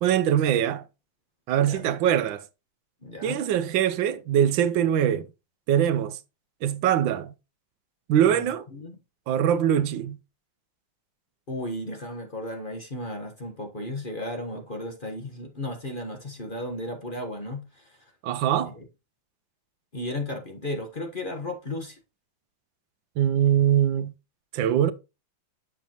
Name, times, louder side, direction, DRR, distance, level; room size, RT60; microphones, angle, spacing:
voice 1, 0.0-0.8 1.5-2.4 3.2-5.3 5.7-6.2 6.6-7.3 8.1-8.6 9.3-10.2 18.2-18.7 23.2-24.1 24.5-24.9, right 10 dB, 80° right, 1.4 m, -22 dB
voice 2, 1.6-1.9 3.0-3.4 8.3-9.0 11.5-18.0 18.7-18.8 19.9-22.0, left 1 dB, 30° left, 1.2 m, -35 dB
8.2 x 6.7 x 2.9 m
omnidirectional pair, 2.1 m